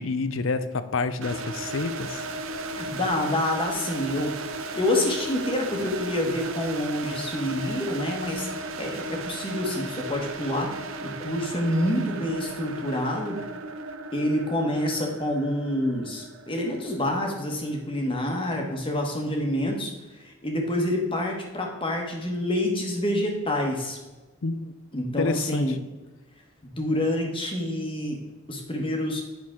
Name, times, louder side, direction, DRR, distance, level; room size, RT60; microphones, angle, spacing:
voice 1, 0.0-2.2 24.4-24.6 25.2-25.7, left 3 dB, 70° left, 12 dB, 0.6 m, -28 dB
sound 1, 1.2-18.0, right 2 dB, 80° right, 0.7 m, -36 dB
voice 2, 2.7-4.3 4.7-8.5 8.8-10.7 11.0-13.4 14.1-24.0 24.9-25.8 26.6-28.2 28.5-29.2, left 1 dB, 25° left, 1 dB, 1.3 m, -27 dB
8.7 x 6.1 x 3.7 m, 1.2 s
head